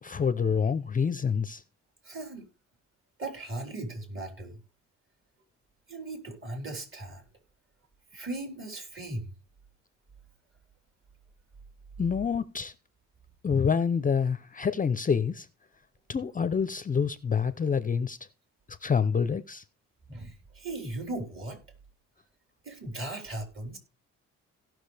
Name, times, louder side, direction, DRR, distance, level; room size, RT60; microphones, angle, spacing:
voice 1, 0.0-1.6 12.0-12.7 13.4-15.5 16.1-18.2 18.8-19.6, left 6 dB, 25° left, 0.6 m, -27 dB
voice 2, 2.0-2.5 3.2-4.6 5.9-7.2 8.1-9.3 20.1-21.6 22.6-23.8, right 2 dB, 45° right, 4.2 m, -37 dB
17.0 x 6.1 x 3.4 m
cardioid pair, 90°, 30 cm